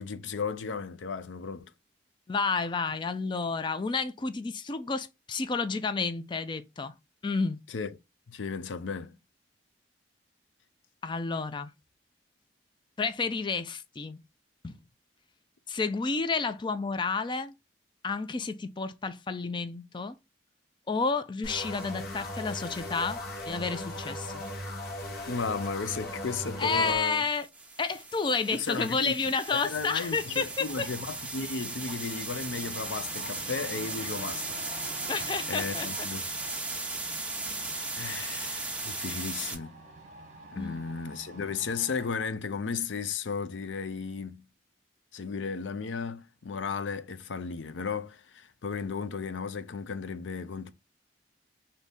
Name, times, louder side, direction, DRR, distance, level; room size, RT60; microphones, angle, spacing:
voice 1, 0.0-1.7 7.7-8.0 8.3-9.2 25.3-27.2 28.5-29.1 29.5-34.7 35.5-36.2 38.0-39.8 40.5-44.5 45.1-50.7, left 5 dB, 90° left, 0.5 m, -35 dB
voice 2, 2.3-6.9 7.2-7.6 11.0-11.7 13.0-14.2 14.6-14.8 15.7-17.5 18.0-20.2 20.9-23.2 23.5-24.4 26.6-27.5 27.8-30.9 35.1-36.1 40.6-40.8, left 4 dB, 25° left, 0.4 m, -30 dB
sound 1, 21.4-27.0, left 1 dB, 55° left, 1.2 m, -38 dB
sound 2, 24.2-24.5 26.7-39.5, right 3 dB, 5° right, 0.7 m, -37 dB
sound 3, 29.6-42.4, right 2 dB, 40° right, 1.0 m, -48 dB
3.5 x 2.7 x 3.9 m
head